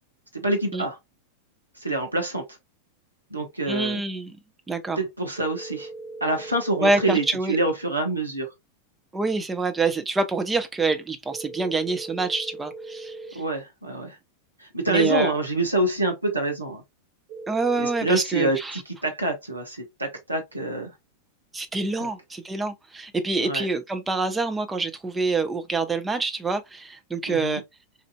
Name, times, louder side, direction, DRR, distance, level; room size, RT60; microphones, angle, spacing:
voice 1, 0.3-1.0 1.8-2.5 3.3-4.0 4.9-5.9 6.2-8.5 13.3-14.2 14.6-16.8 17.8-20.9 22.0-22.1 23.4-23.6 27.3-27.6, right 2 dB, 85° right, 0.8 m, -26 dB
voice 2, 3.7-4.4 4.7-5.0 6.8-7.6 9.1-13.4 14.9-15.3 17.5-18.8 21.5-27.6, right 3 dB, 10° right, 0.6 m, -26 dB
sound 1, 5.4-7.3 11.3-13.3 17.3-18.1, right 2 dB, 40° right, 1.2 m, -39 dB
4.3 x 2.6 x 2.2 m
figure-of-eight pair, 90°, 0 cm